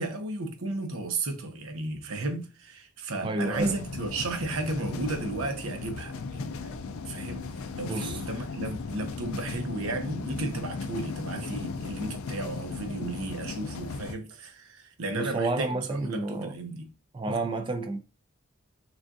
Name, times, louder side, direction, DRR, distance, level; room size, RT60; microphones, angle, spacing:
voice 1, 0.0-16.9, right 2 dB, 90° right, 0.8 m, -34 dB
voice 2, 3.2-3.8 7.9-8.2 15.1-16.5 17.1-18.0, right 2 dB, 25° right, 0.3 m, -30 dB
sound 1, 3.5-14.1, left 4 dB, 80° left, 0.4 m, -36 dB
6.1 x 2.5 x 2.5 m
head